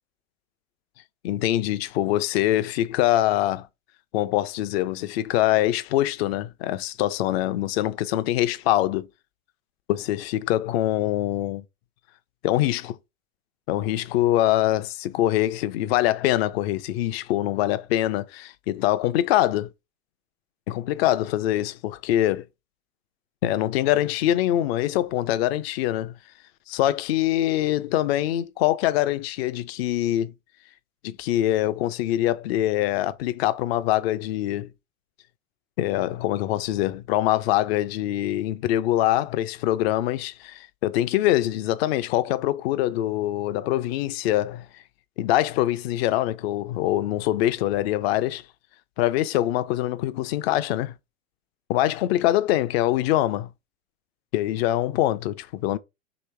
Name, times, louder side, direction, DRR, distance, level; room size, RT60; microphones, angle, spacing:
voice 1, 1.2-3.7 4.1-9.1 9.9-11.6 12.4-13.0 13.7-19.7 20.7-22.5 23.4-26.1 26.7-30.3 31.0-34.7 35.8-44.7 45.2-48.4 49.0-50.9 51.7-53.5 54.3-55.8, left 14 dB, 45° left, 0.5 m, -24 dB
3.1 x 3.0 x 4.4 m
hypercardioid pair, 105°, 43 cm